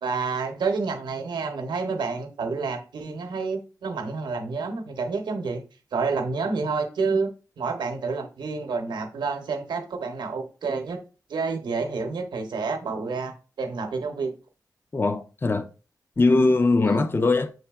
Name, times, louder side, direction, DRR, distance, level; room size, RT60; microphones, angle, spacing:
voice 1, 0.0-5.6 5.9-7.3 7.6-11.0 11.3-13.3 13.6-14.3 16.8-17.0, right 4 dB, 85° right, 0.7 m, -29 dB
voice 2, 14.9-15.7 16.2-17.5, left 3 dB, 30° left, 0.5 m, -21 dB
7.5 x 2.7 x 2.3 m
cardioid pair, 50°, 7 cm